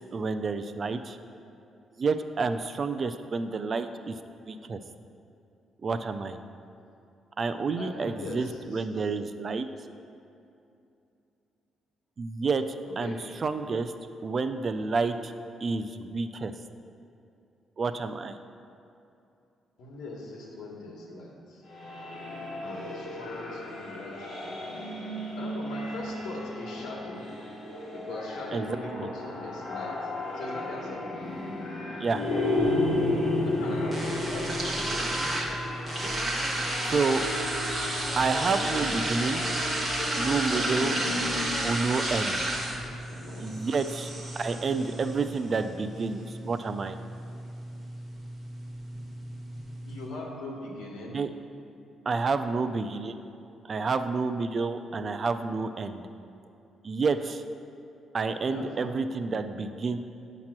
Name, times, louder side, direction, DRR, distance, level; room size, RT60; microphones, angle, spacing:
voice 1, 0.1-1.2 2.0-4.2 4.5-4.8 5.8-6.4 7.4-9.7 12.2-13.9 14.2-15.3 15.6-16.5 17.8-18.4 28.5-29.1 32.0-32.2 36.9-37.2 38.2-39.5 40.1-41.0 41.6-42.4 43.4-47.0 51.1-51.3 52.1-53.2 53.6-56.0 56.8-57.4 58.1-60.0, right 4 dB, 35° right, 9 dB, 0.3 m, -29 dB
voice 2, 7.8-8.8 12.8-13.2 19.8-21.6 22.6-24.8 25.4-27.2 27.9-29.9 30.3-31.0 33.4-34.8 42.8-43.7 49.9-51.2 58.4-58.9, left 2 dB, 85° left, -2 dB, 1.1 m, -41 dB
sound 1, 21.7-41.5, left 2 dB, 60° left, 1.3 m, -34 dB
sound 2, 32.1-50.1, right 1 dB, 10° right, 1.1 m, -33 dB
sound 3, 34.7-41.4, left 1 dB, 5° left, 1.2 m, -41 dB
8.5 x 2.9 x 6.0 m, 2.6 s
cardioid pair, 125°, 0 cm